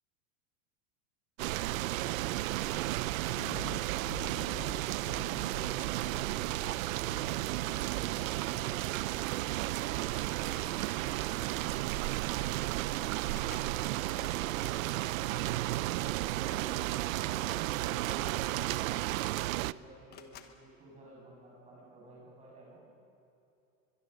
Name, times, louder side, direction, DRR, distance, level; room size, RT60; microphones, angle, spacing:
sound 1, 1.4-19.7, right 17 dB, 90° right, 0.6 m, -33 dB
sound 2, 3.4-8.8 9.1-9.8, left 14 dB, 80° left, 1.0 m, -49 dB
sound 3, 5.5-6.1 7.0-7.3 8.8-9.0 9.3-9.5 10.4-11.2 12.2-12.3 12.6-13.8 16.8-17.9 18.8-18.9 19.1-19.6 20.1-20.6, left 9 dB, 25° left, 1.1 m, -57 dB
voice 1, 19.5-22.9, right 2 dB, 15° right, -3 dB, 7.0 m, -53 dB
23.0 x 22.0 x 6.8 m, 2.8 s
supercardioid pair, 170°, 40 cm